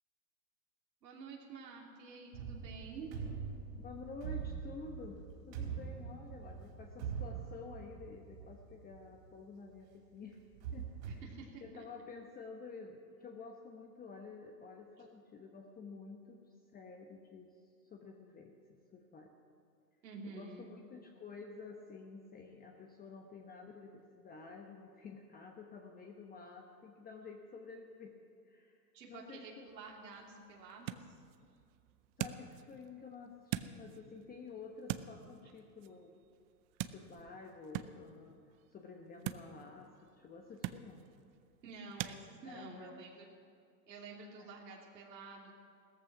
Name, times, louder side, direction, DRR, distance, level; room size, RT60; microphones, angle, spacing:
voice 1, 1.0-3.1 11.0-11.8 20.0-20.7 28.9-31.2 41.6-43.3 43.9-45.5, right 4 dB, 80° right, -2 dB, 3.1 m, -50 dB
sound 1, 2.3-9.3 9.8-9.9 10.4-11.1, right 7 dB, 60° right, 4.1 m, -43 dB
voice 2, 3.8-10.4 10.7-11.2 11.6-19.3 20.2-28.1 28.4-28.8 29.1-29.7 32.2-36.2 36.8-38.4 38.7-41.0 42.4-43.1 44.4-44.5, left 4 dB, 20° left, 2 dB, 1.0 m, -51 dB
sound 2, 29.7-42.2, right 14 dB, 35° right, 0.6 m, -46 dB
16.0 x 14.0 x 6.0 m, 2.4 s
hypercardioid pair, 120°, 50 cm